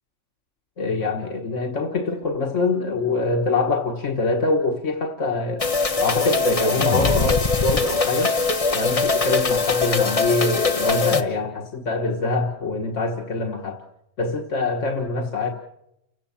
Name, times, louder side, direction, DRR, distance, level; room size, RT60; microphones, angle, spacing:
voice 1, 0.8-5.6 6.0-8.4 8.7-13.8 14.2-15.5, left 3 dB, 90° left, 3 dB, 1.8 m, -24 dB
sound 1, 5.6-11.2, left 4 dB, 30° left, 1.3 m, -21 dB
29.5 x 16.5 x 7.2 m, 0.86 s
omnidirectional pair, 1.2 m